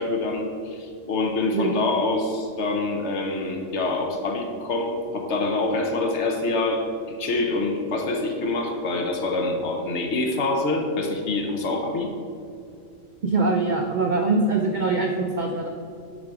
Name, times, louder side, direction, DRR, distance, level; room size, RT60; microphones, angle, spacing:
voice 1, 0.0-12.1, left 2 dB, 60° left, 3 dB, 1.0 m, -26 dB
voice 2, 13.2-15.7, right 3 dB, 60° right, 2 dB, 0.5 m, -23 dB
7.4 x 4.9 x 4.7 m, 2.4 s
omnidirectional pair, 1.4 m